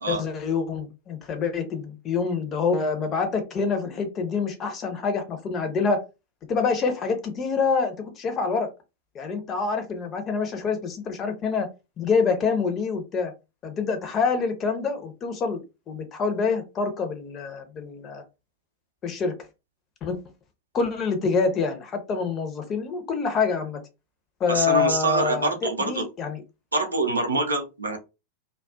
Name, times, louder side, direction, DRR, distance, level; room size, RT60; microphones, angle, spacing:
voice 1, 0.1-6.0 6.5-8.7 9.1-11.7 12.0-13.3 13.6-15.6 15.9-18.2 19.0-19.3 20.0-20.2 20.7-23.8 24.4-26.4, left 5 dB, 30° left, 7 dB, 0.6 m, -26 dB
voice 2, 24.5-26.1 26.7-28.0, right 2 dB, 75° right, 4 dB, 0.6 m, -25 dB
2.4 x 2.3 x 2.3 m, 0.27 s
figure-of-eight pair, 90°, 0 cm